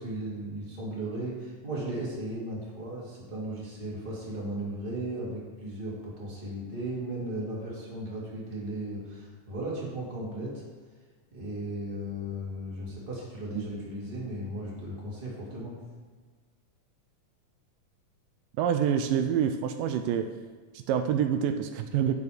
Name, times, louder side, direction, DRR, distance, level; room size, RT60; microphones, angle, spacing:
voice 1, 0.0-10.6 11.3-15.8, right 1 dB, 15° right, -5 dB, 2.2 m, -36 dB
voice 2, 18.6-20.3 20.7-22.1, right 8 dB, 85° right, 7 dB, 2.2 m, -27 dB
10.5 x 6.8 x 5.1 m, 1.5 s
omnidirectional pair, 3.9 m